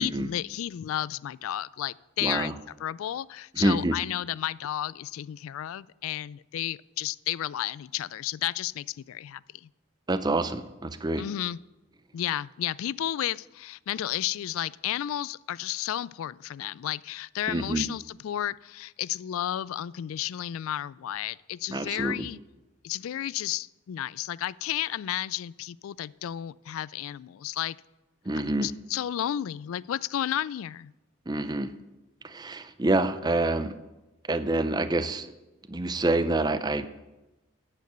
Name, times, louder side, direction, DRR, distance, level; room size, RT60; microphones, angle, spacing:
voice 1, 0.0-9.7 11.2-11.6 12.1-22.4 22.8-27.8 28.6-30.9, left 12 dB, 75° left, 22 dB, 0.3 m, -32 dB
voice 2, 2.2-2.5 3.6-4.0 10.1-11.2 17.5-17.9 21.7-22.3 28.3-28.7 31.3-31.7 32.2-33.7 34.3-35.3 35.7-36.9, right 2 dB, 20° right, 12 dB, 0.6 m, -27 dB
10.5 x 8.3 x 8.0 m, 1.0 s
head